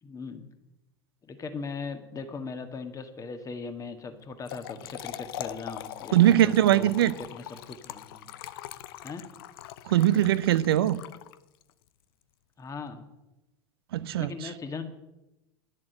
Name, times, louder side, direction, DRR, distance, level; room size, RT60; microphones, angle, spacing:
voice 1, 0.0-0.4 1.2-8.3 9.0-9.2 12.6-13.0 14.2-14.8, left 4 dB, 25° left, 1.7 m, -39 dB
Trickle dribble / Fill (with liquid), 4.2-11.7, left 13 dB, 65° left, 0.6 m, -42 dB
voice 2, 6.1-7.1 9.9-11.0 13.9-14.5, right 12 dB, 70° right, 0.6 m, -21 dB
10.5 x 7.5 x 7.8 m
hypercardioid pair, 85°, 13 cm